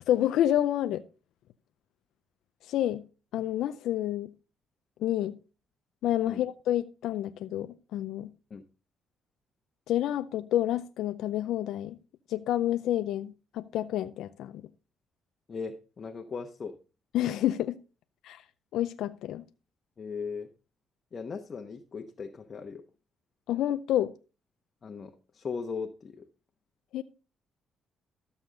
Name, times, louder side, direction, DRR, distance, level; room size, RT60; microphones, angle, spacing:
voice 1, 0.1-1.0 2.6-3.0 3.3-4.3 5.0-5.4 6.0-8.3 9.9-12.0 12.3-14.7 17.1-17.8 18.2-18.4 18.7-19.4 23.5-24.1 26.9-27.0, left 12 dB, 85° left, 0.5 m, -29 dB
voice 2, 15.5-16.8 20.0-20.5 21.1-22.8 24.8-26.3, left 5 dB, 45° left, 1.0 m, -38 dB
13.0 x 7.1 x 3.8 m
cardioid pair, 90°, 0 cm